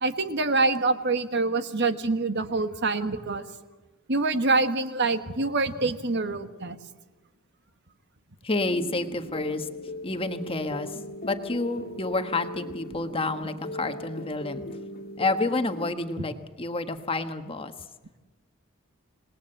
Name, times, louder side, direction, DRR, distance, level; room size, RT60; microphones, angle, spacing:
voice 1, 0.0-3.4 4.1-6.8, right 3 dB, 55° right, 9 dB, 1.5 m, -25 dB
voice 2, 8.4-9.7 10.0-10.9 11.2-14.6 15.2-17.7, left 2 dB, 25° left, 7 dB, 1.4 m, -29 dB
sound 1, 8.6-15.9, left 1 dB, 45° left, 2.1 m, -39 dB
27.0 x 19.5 x 7.9 m, 1.2 s
head